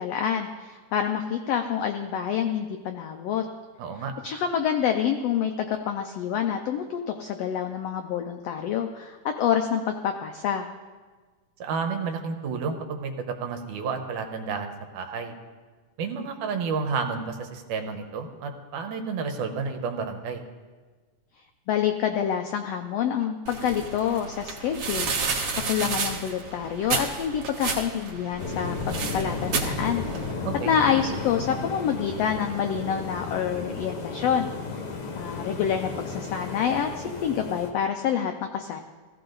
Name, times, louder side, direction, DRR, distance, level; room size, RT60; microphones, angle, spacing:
voice 1, 0.0-3.4 4.0-10.7 21.7-25.1 25.5-30.0 30.7-34.5 35.2-38.8, left 8 dB, 85° left, 5 dB, 1.4 m, -27 dB
voice 2, 3.8-4.1 11.6-15.3 16.0-20.4 30.5-30.7, right 5 dB, 80° right, 5 dB, 2.6 m, -31 dB
sound 1, 23.5-30.3, right 4 dB, 55° right, 2.1 m, -31 dB
sound 2, 28.4-37.7, left 4 dB, 55° left, 1.1 m, -34 dB
16.0 x 14.5 x 4.0 m, 1.4 s
omnidirectional pair, 3.6 m